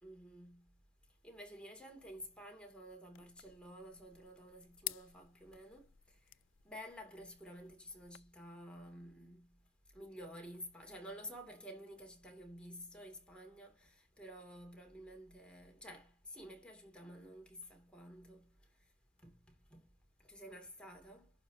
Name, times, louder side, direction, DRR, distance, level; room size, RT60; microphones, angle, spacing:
voice 1, 0.0-0.7 1.2-6.3 6.6-9.5 9.9-18.5 19.2-19.4 19.7-19.9 20.2-21.3, equal, 5° left, 2.8 m, -52 dB
sound 1, 3.1-8.2, left 18 dB, 80° left, 0.4 m, -51 dB
12.0 x 5.2 x 2.8 m
head